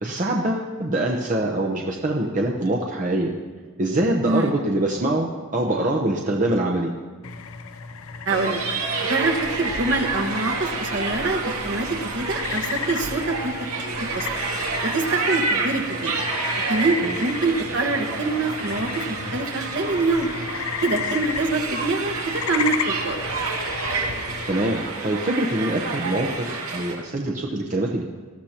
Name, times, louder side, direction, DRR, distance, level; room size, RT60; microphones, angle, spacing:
voice 1, 0.0-3.3 3.8-6.9 17.0-17.1 24.5-28.0, right 1 dB, 35° right, -1 dB, 0.8 m, -24 dB
sound 1, 7.2-24.8, left 6 dB, 70° left, 0.6 m, -34 dB
voice 2, 8.2-8.6 9.1-14.3 14.8-16.1 16.7-20.3 20.8-23.2, right 3 dB, 55° right, 2 dB, 1.4 m, -25 dB
sound 2, 8.3-26.9, right 3 dB, 80° right, 2.2 m, -29 dB
20.0 x 13.5 x 2.9 m, 1.4 s
head